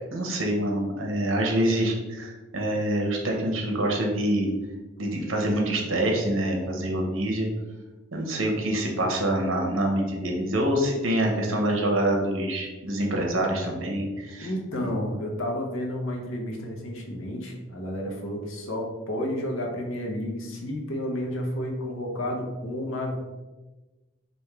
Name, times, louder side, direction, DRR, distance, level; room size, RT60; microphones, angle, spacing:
voice 1, 0.1-4.5 5.0-7.5 8.1-14.5 14.8-14.9, right 1 dB, 75° right, 0 dB, 0.9 m, -26 dB
voice 2, 14.4-23.2, equal, 75° left, 1 dB, 0.9 m, -31 dB
3.5 x 2.6 x 4.5 m, 1.2 s
head